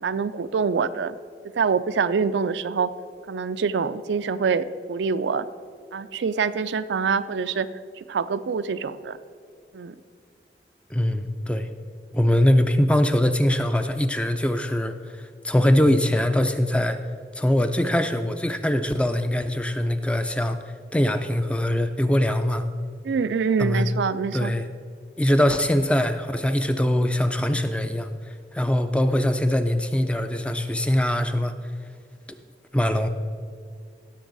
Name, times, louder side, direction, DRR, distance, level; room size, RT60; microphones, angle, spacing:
voice 1, 0.0-1.2 1.5-2.9 3.3-5.5 5.9-7.7 8.0-9.2 9.7-10.0 23.0-24.6, right 5 dB, 90° right, 12 dB, 0.4 m, -25 dB
voice 2, 10.9-11.7 12.1-17.0 17.4-20.6 20.9-22.7 23.6-23.9 24.3-24.7 25.2-28.1 28.5-31.5 32.7-33.1, left 1 dB, 5° left, 9 dB, 0.4 m, -22 dB
16.0 x 6.9 x 3.9 m, 2.1 s
head